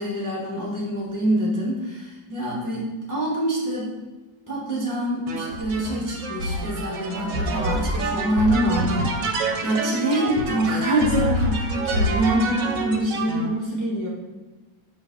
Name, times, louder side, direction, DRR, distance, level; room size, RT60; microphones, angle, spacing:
voice 1, 0.0-3.9 4.5-14.1, right 1 dB, 10° left, -6 dB, 1.1 m, -25 dB
sound 1, 5.3-13.5, right 2 dB, 65° right, 1.5 m, -27 dB
7.0 x 3.3 x 5.2 m, 1.2 s
omnidirectional pair, 2.1 m